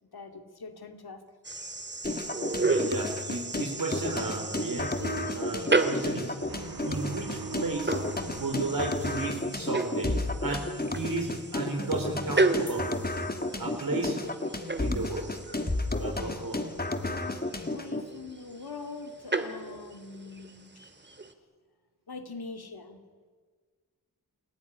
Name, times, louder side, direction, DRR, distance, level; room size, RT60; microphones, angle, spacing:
voice 1, 0.1-1.2 17.0-17.4 17.7-20.8 22.1-23.0, left 4 dB, 80° left, 6 dB, 2.6 m, -43 dB
sound 1, 1.4-21.3, right 3 dB, 30° right, 2.0 m, -34 dB
sound 2, 2.0-18.0, left 2 dB, 25° left, 1.8 m, -33 dB
voice 2, 2.6-5.0 5.3-6.4 6.8-8.0 8.4-13.0 13.6-14.2 14.8-15.3 16.0-16.7, right 3 dB, 60° right, 1 dB, 3.9 m, -33 dB
sound 3, 5.0-10.0, right 4 dB, 80° right, 2.3 m, -42 dB
28.5 x 16.5 x 10.0 m, 1.6 s
wide cardioid pair, 85°, 37 cm